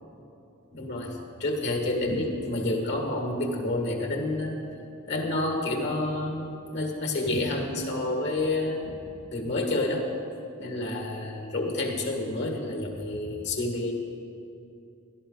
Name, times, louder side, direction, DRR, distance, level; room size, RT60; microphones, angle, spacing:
voice 1, 0.7-4.6 5.1-9.0 9.3-10.1 10.6-13.9, left 2 dB, 55° left, 1 dB, 1.8 m, -29 dB
16.5 x 12.5 x 3.9 m, 2.6 s
head